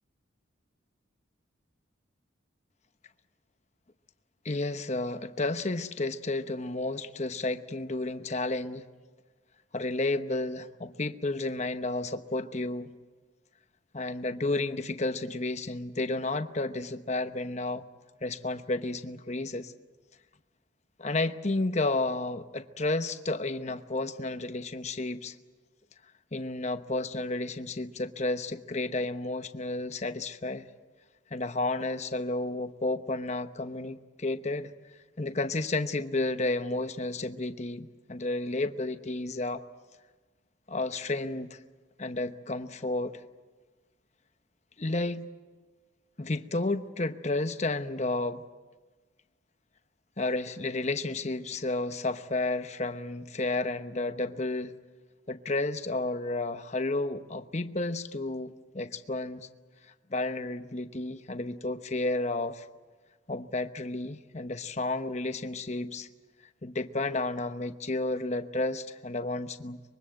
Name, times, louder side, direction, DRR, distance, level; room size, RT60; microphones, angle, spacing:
voice 1, 4.4-8.8 9.7-12.9 13.9-17.8 18.2-19.7 21.0-25.4 26.3-30.7 31.3-34.7 35.2-39.6 40.7-41.6 42.0-43.2 44.8-45.3 46.2-48.4 50.2-54.7 55.3-59.5 60.1-62.7 63.3-66.1 66.6-69.8, left 2 dB, 35° left, 9 dB, 0.9 m, -32 dB
24.5 x 22.5 x 7.8 m, 1.3 s
head